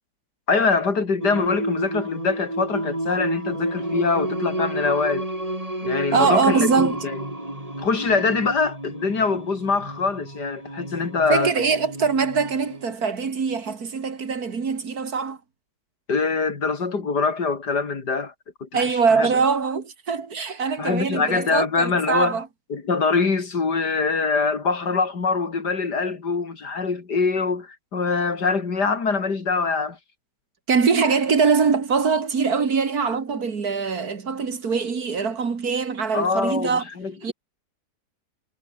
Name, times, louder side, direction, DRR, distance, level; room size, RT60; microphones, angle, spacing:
voice 1, 0.5-5.3 5.8-7.2 7.8-11.5 16.1-18.3 18.6-19.3 20.8-22.4 22.7-30.0 36.1-37.3, left 4 dB, 85° left, 3.5 m, -24 dB
Singing, 1.2-12.9, right 1 dB, 20° right, 5.6 m, -31 dB
voice 2, 6.1-7.0 11.3-15.4 18.7-22.5 30.7-36.9 37.2-37.3, right 5 dB, 65° right, 2.6 m, -22 dB
omnidirectional pair, 1.7 m